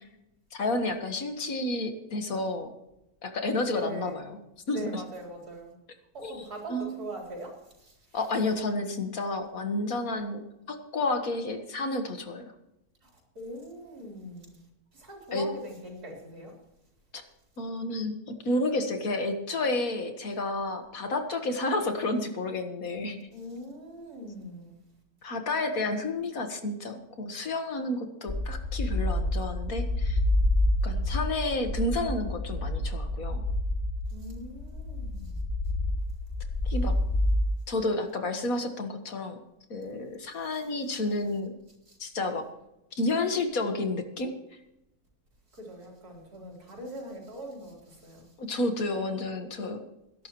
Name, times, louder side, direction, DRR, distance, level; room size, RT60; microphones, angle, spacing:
voice 1, 0.5-2.7 3.2-4.4 4.7-5.0 6.2-6.4 6.7-7.0 8.1-12.5 15.3-15.5 17.6-23.3 25.2-30.2 30.8-33.4 36.6-36.9 37.7-39.4 39.7-41.5 42.0-42.4 43.0-44.3 48.4-49.8, left 2 dB, 65° left, 6 dB, 2.0 m, -30 dB
voice 2, 3.7-4.2 4.7-5.7 6.1-8.2 13.0-14.6 14.9-16.6 23.3-24.8 34.1-35.4 41.9-42.0 45.5-48.3, right 1 dB, 80° right, -1 dB, 4.6 m, -42 dB
sound 1, 28.3-37.5, left 1 dB, 30° left, 3.8 m, -28 dB
21.0 x 11.5 x 3.2 m, 0.89 s
omnidirectional pair, 1.6 m